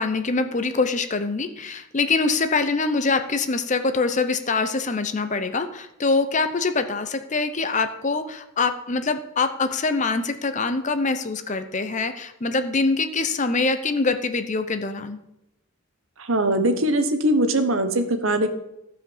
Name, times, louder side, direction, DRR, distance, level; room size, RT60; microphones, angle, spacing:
voice 1, 0.0-15.2, left 3 dB, 35° left, 9 dB, 0.7 m, -24 dB
voice 2, 16.2-18.5, right 1 dB, 65° right, 8 dB, 1.2 m, -21 dB
13.5 x 5.0 x 7.3 m, 0.86 s
head